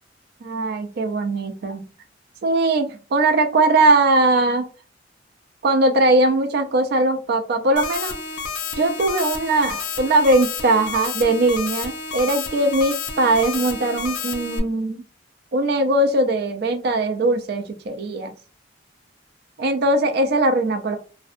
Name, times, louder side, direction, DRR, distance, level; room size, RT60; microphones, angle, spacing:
voice 1, 0.4-1.8 2.4-4.7 5.6-8.2 8.8-15.0 15.5-18.3 19.6-21.0, right 2 dB, 55° right, 6 dB, 0.4 m, -20 dB
sound 1, 7.8-14.6, left 5 dB, 75° left, 0.5 m, -30 dB
2.5 x 2.1 x 2.4 m, 0.35 s
head